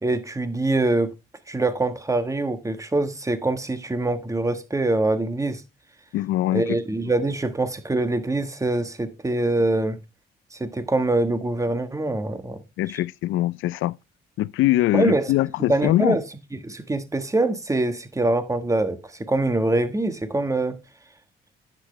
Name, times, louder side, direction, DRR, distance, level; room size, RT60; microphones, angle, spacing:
voice 1, 0.0-1.1 1.5-5.6 6.5-10.0 10.5-12.6 14.9-15.3 15.7-16.2 16.6-20.8, right 2 dB, 15° right, 1.3 m, -24 dB
voice 2, 6.1-6.8 12.8-14.0 14.4-16.2, left 15 dB, 85° left, 0.5 m, -22 dB
9.9 x 7.9 x 3.2 m
cardioid pair, 90°, 20 cm